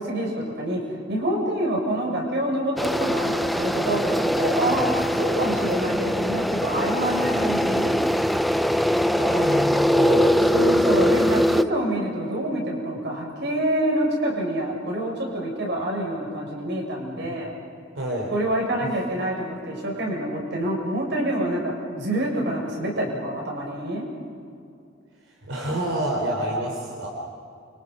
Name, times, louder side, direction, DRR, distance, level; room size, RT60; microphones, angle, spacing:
voice 1, 0.0-8.0 10.5-17.5 18.3-24.1, right 1 dB, 60° right, -1 dB, 7.0 m, -27 dB
sound 1, 2.8-11.6, equal, ahead, 0.5 m, -22 dB
voice 2, 9.2-10.3 17.2-17.3 18.0-18.3 18.8-18.9 25.4-27.1, right 1 dB, 85° right, -2 dB, 3.7 m, -28 dB
29.0 x 25.5 x 5.5 m, 2.5 s
head